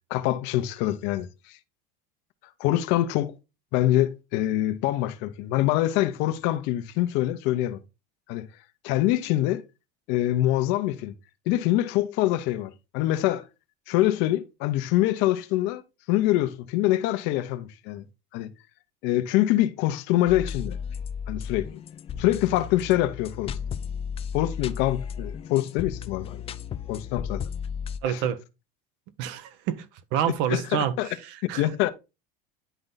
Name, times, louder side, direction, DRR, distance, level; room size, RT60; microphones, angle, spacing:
voice 1, 0.1-1.3 2.6-3.3 3.7-7.8 8.3-8.5 8.8-9.6 10.1-11.1 11.5-13.4 13.9-15.8 16.1-18.0 18.3-18.5 19.0-20.8 21.3-21.7 22.2-23.6 24.3-26.4 26.9-27.4 28.1-28.2 30.5-31.1 31.6-31.9, left 14 dB, 65° left, 0.9 m, -25 dB
sound 1, 20.3-28.0, left 7 dB, 30° left, 0.5 m, -34 dB
voice 2, 28.0-28.4 29.2-31.7, right 10 dB, 65° right, 1.0 m, -28 dB
10.5 x 3.9 x 3.9 m
supercardioid pair, 135°, 20 cm